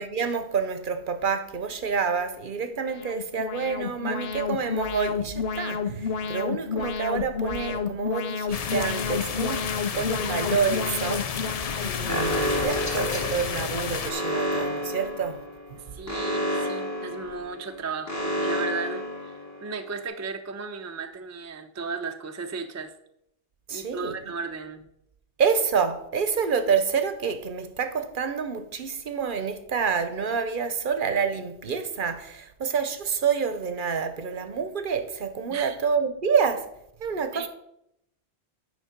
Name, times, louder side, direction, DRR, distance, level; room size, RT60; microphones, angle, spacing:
voice 1, 0.0-11.4 11.8-15.4 15.7-15.8 23.7-24.2 25.4-36.7 37.0-37.5, right 6 dB, 55° right, 0.9 m, -28 dB
Alarm, 2.7-12.6, left 6 dB, 70° left, 0.8 m, -31 dB
sound 1, 8.5-14.1, left 7 dB, 50° left, 0.5 m, -31 dB
Alarm 2, 12.1-19.8, equal, 15° left, 1.3 m, -30 dB
voice 2, 15.8-22.9 23.7-24.9 35.5-35.8 37.3-37.5, right 4 dB, 20° right, 0.4 m, -35 dB
9.3 x 5.1 x 5.1 m
omnidirectional pair, 1.1 m